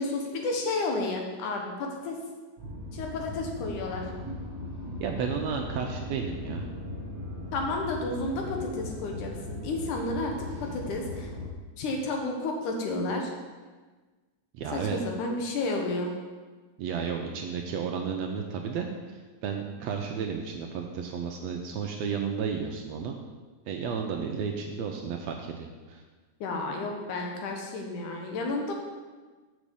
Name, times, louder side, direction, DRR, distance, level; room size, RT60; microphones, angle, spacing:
voice 1, 0.0-2.2 2.9-4.0 7.5-11.3 11.8-13.3 14.7-16.1 26.4-28.7, left 2 dB, 80° left, 2 dB, 2.7 m, -31 dB
sound 1, 2.6-11.5, left 2 dB, 30° right, 1.3 m, -38 dB
voice 2, 5.0-6.7 14.5-15.0 16.8-23.2 23.7-26.0, right 6 dB, 80° right, 3 dB, 1.6 m, -33 dB
6.2 x 6.2 x 6.8 m, 1.3 s
omnidirectional pair, 3.5 m